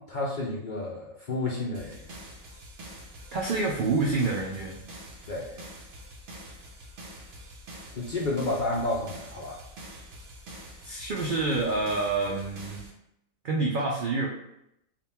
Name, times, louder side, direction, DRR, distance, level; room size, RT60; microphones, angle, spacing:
voice 1, 0.0-2.2 5.3-5.5 7.9-9.6, left 2 dB, 70° left, -3 dB, 0.4 m, -31 dB
sound 1, 1.7-12.9, right 1 dB, 60° right, 1.0 m, -45 dB
voice 2, 3.3-4.8 10.8-12.8 13.4-14.3, right 3 dB, 80° right, -2 dB, 0.4 m, -27 dB
3.6 x 2.5 x 4.2 m, 0.81 s
omnidirectional pair, 1.5 m